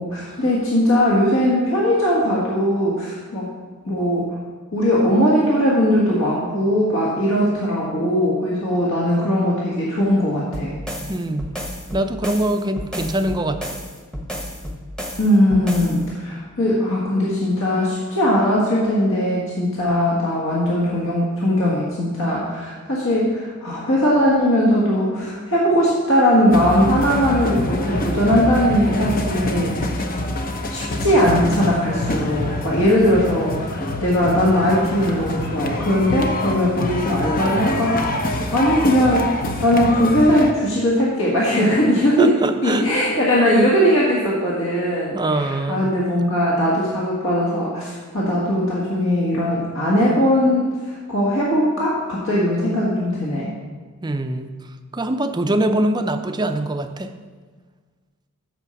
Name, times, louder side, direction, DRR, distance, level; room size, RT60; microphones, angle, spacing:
voice 1, 0.0-3.5 3.8-4.4 4.7-10.7 15.2-30.0 30.7-39.3 39.6-42.3 42.6-53.5, equal, 65° left, -5 dB, 1.7 m, -19 dB
sound 1, 10.5-16.0, equal, 5° left, 1.0 m, -32 dB
voice 2, 11.1-11.5 11.9-13.7 42.2-42.9 45.1-45.9 54.0-54.5 54.9-57.1, right 1 dB, 20° right, 7 dB, 0.5 m, -23 dB
sound 2, 26.5-40.5, left 1 dB, 40° left, 0.8 m, -25 dB
8.3 x 5.6 x 7.0 m, 1.5 s
head